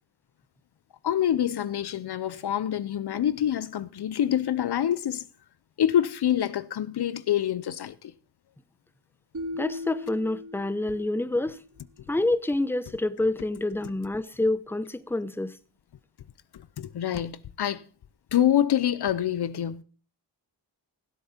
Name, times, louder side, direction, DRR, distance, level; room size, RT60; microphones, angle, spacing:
voice 1, 1.0-5.3 5.8-8.1 16.5-17.8 18.3-19.8, left 10 dB, 60° left, 0.7 m, -26 dB
sound 1, 9.3-11.5, left 2 dB, 40° right, 3.2 m, -38 dB
voice 2, 9.5-11.6 12.1-15.6, left 2 dB, 5° left, 0.8 m, -27 dB
16.5 x 8.0 x 4.3 m
cardioid pair, 70°, 44 cm